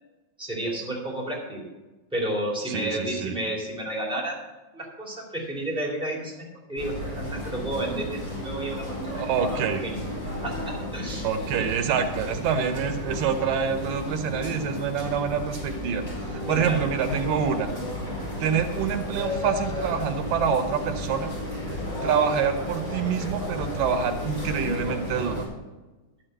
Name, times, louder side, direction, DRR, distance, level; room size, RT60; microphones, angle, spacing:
voice 1, 0.4-1.7 2.1-4.4 4.7-10.0 10.4-11.7 16.5-16.9, right 1 dB, ahead, -2 dB, 2.6 m, -32 dB
voice 2, 2.7-3.4 9.1-9.8 11.2-16.0 16.3-17.7 18.4-21.3 22.0-25.4, right 7 dB, 85° right, 8 dB, 2.6 m, -26 dB
sound 1, 6.8-25.5, left 1 dB, 20° left, 5.1 m, -33 dB
sound 2, 14.7-15.2 16.0-16.1 16.9-17.4 18.7-19.2 19.7-19.8 20.1-20.2, equal, 35° right, 4.8 m, -47 dB
12.0 x 6.4 x 7.8 m, 1.2 s
omnidirectional pair, 3.8 m